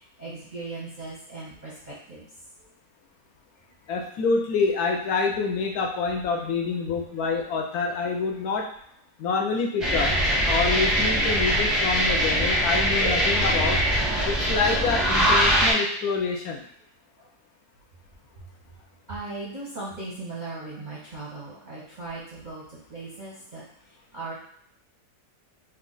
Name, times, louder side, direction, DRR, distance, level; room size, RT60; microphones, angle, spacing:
voice 1, 0.0-2.2 17.2-17.3 19.1-23.6 24.1-24.3, right 3 dB, 45° right, -7 dB, 0.6 m, -38 dB
voice 2, 3.9-8.7 9.2-10.1 10.4-13.8 14.3-16.6, left 4 dB, 75° left, 1 dB, 1.0 m, -27 dB
sound 1, 9.8-15.7, equal, ahead, 0.4 m, -22 dB
3.1 x 2.3 x 3.8 m, 0.67 s
omnidirectional pair, 1.7 m